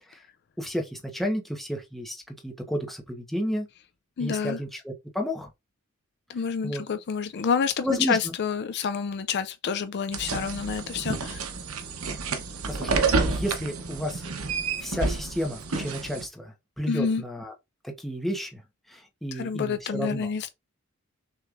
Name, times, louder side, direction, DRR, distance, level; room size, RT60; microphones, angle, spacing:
voice 1, 0.6-3.7 4.2-5.5 6.6-6.8 7.8-8.3 12.7-13.0 13.3-14.2 14.8-17.5 17.8-18.6 18.9-20.3, equal, ahead, 1.0 m, -32 dB
voice 2, 4.2-4.6 6.3-11.4 16.9-17.2 19.3-20.5, left 6 dB, 50° left, 0.4 m, -28 dB
sound 1, 10.1-16.3, right 4 dB, 75° right, 0.9 m, -29 dB
6.5 x 3.1 x 2.5 m
head